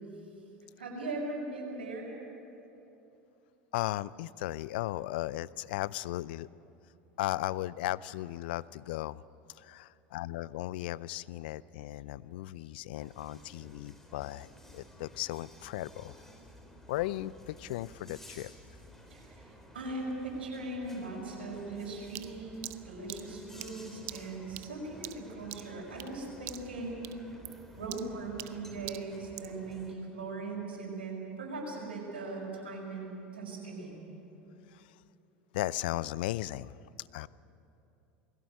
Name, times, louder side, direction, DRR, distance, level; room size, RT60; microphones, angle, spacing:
voice 1, 0.8-2.1 19.1-27.2 27.7-34.0, right 3 dB, 85° right, -2 dB, 5.8 m, -39 dB
voice 2, 3.7-6.5 7.2-9.2 9.5-16.1 16.9-18.5 34.7-34.9 35.5-36.8 37.1-37.3, left 16 dB, 70° left, 20 dB, 0.5 m, -36 dB
sound 1, 13.0-30.0, left 1 dB, 5° left, 3.5 m, -53 dB
sound 2, 22.2-26.2 26.5-26.8 27.0-29.6, right 18 dB, 55° right, 0.7 m, -45 dB
21.5 x 16.5 x 9.0 m, 2.8 s
hypercardioid pair, 85°, 5 cm